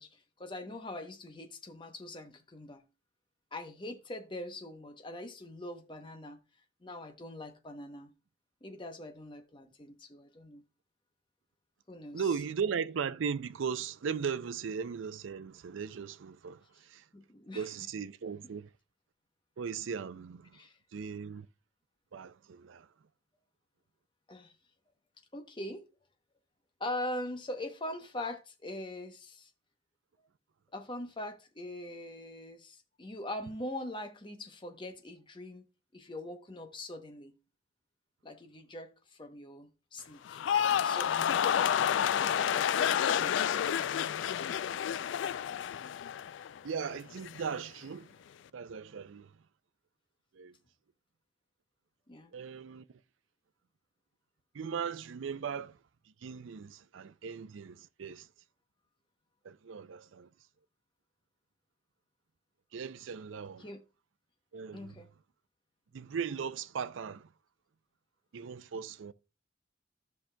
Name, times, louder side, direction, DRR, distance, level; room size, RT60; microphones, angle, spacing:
voice 1, 0.0-2.8 3.5-6.4 6.8-8.1 8.6-10.6 11.9-12.2 17.1-17.7 20.5-20.8 24.3-24.5 25.3-25.9 26.8-29.5 30.7-35.7 35.9-37.4 38.2-40.5 40.8-41.7 42.2-44.1 52.1-52.3 63.6-63.8 64.7-65.1, left 1 dB, 25° left, 0.8 m, -42 dB
voice 2, 12.1-17.0 17.5-18.7 19.6-20.6 20.9-21.5 22.1-22.9 42.8-42.9 46.6-48.1 48.5-49.3 50.3-50.5 52.3-52.8 54.5-55.8 56.2-58.3 59.4-60.3 62.7-63.7 64.5-65.0 65.9-67.3 68.3-69.1, right 6 dB, 80° right, 0.4 m, -38 dB
sound 1, 40.3-46.6 46.9-47.4, left 9 dB, 70° left, 0.3 m, -29 dB
14.5 x 5.8 x 2.2 m
head